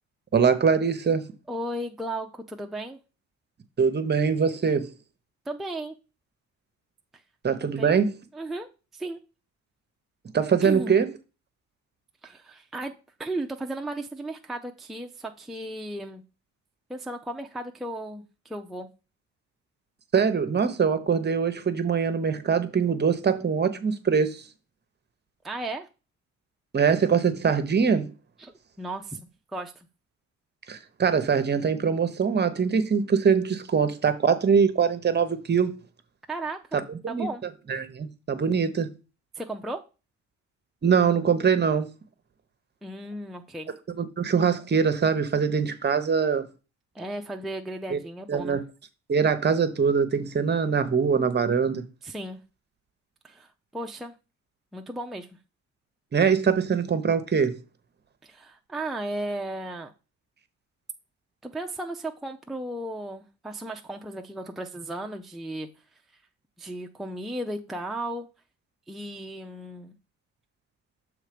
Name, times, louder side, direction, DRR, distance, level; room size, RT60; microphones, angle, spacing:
voice 1, 0.3-1.2 3.8-4.9 7.4-8.1 10.3-11.1 20.1-24.4 26.7-28.1 30.7-35.7 36.7-37.3 37.7-38.9 40.8-41.9 44.0-46.4 47.9-48.0 48.3-48.6 49.1-51.8 56.1-57.6, right 6 dB, 35° right, 0.9 m, -23 dB
voice 2, 1.5-3.0 5.5-5.9 7.6-7.9 8.3-9.2 10.6-10.9 12.2-12.9 13.2-16.2 16.9-18.9 25.4-25.9 28.4-28.5 28.8-29.2 29.5-29.9 36.3-37.4 39.4-39.8 42.8-43.7 46.9-48.6 52.0-52.4 53.2-54.1 54.7-55.3 58.2-59.9 61.4-65.7 66.6-68.3 68.9-69.9, right 1 dB, ahead, 0.5 m, -35 dB
6.3 x 3.3 x 5.1 m
cardioid pair, 90°, 30 cm